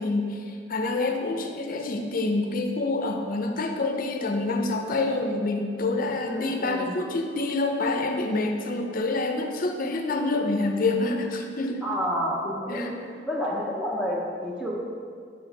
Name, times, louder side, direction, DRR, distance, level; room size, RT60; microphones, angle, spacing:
voice 1, 0.0-11.9 12.7-12.9, left 2 dB, 50° left, 4 dB, 0.5 m, -27 dB
voice 2, 6.2-6.9 11.8-12.9 13.3-14.7, equal, 5° right, -5 dB, 0.6 m, -29 dB
6.1 x 3.6 x 4.7 m, 2.2 s
head